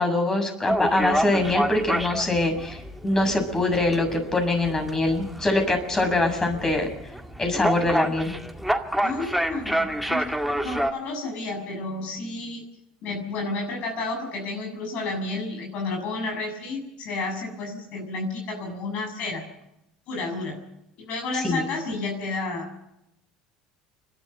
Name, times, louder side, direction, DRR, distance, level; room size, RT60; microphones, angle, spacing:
voice 1, 0.0-6.9 7.4-8.3 21.3-21.6, left 2 dB, 20° left, 5 dB, 7.1 m, -23 dB
sound 1, 0.7-10.9, equal, ahead, 2.0 m, -28 dB
voice 2, 9.0-10.2 10.6-12.6 13.0-19.4 20.1-20.6 21.0-22.8, left 3 dB, 60° left, 2 dB, 7.1 m, -31 dB
30.0 x 12.5 x 8.0 m, 0.85 s
hypercardioid pair, 75°, 3 cm